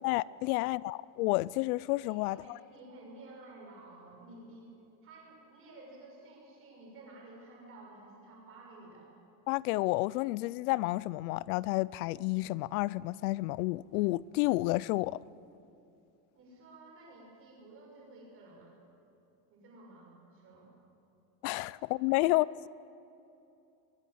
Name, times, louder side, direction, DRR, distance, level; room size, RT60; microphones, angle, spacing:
voice 1, 0.0-2.6 9.5-15.2 21.4-22.7, left 20 dB, 75° left, 0.5 m, -30 dB
voice 2, 2.0-4.7 5.0-9.1 16.3-18.7 19.5-20.7 21.6-21.7 22.1-22.4, right 2 dB, 30° right, 6.8 m, -53 dB
22.5 x 19.5 x 7.9 m
cardioid pair, 175°, 44 cm